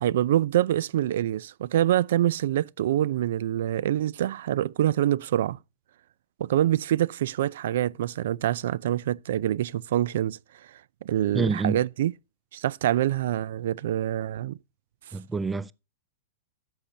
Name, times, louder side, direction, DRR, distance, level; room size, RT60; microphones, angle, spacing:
voice 1, 0.0-5.6 6.4-10.4 11.0-12.1 12.5-14.6, right 12 dB, 70° right, 0.4 m, -25 dB
voice 2, 11.3-11.8 15.1-15.7, right 4 dB, 10° right, 0.4 m, -27 dB
13.5 x 8.7 x 2.7 m
supercardioid pair, 155°, 0 cm